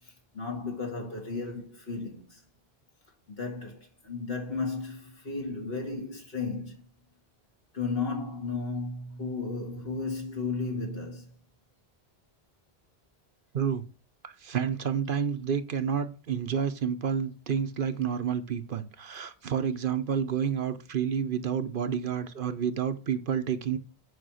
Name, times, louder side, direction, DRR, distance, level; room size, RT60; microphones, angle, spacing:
voice 1, 0.0-2.4 3.3-6.8 7.7-11.3, left 4 dB, 65° left, 2.3 m, -34 dB
voice 2, 14.2-23.8, right 7 dB, 60° right, 0.9 m, -29 dB
8.2 x 5.0 x 6.3 m
omnidirectional pair, 1.1 m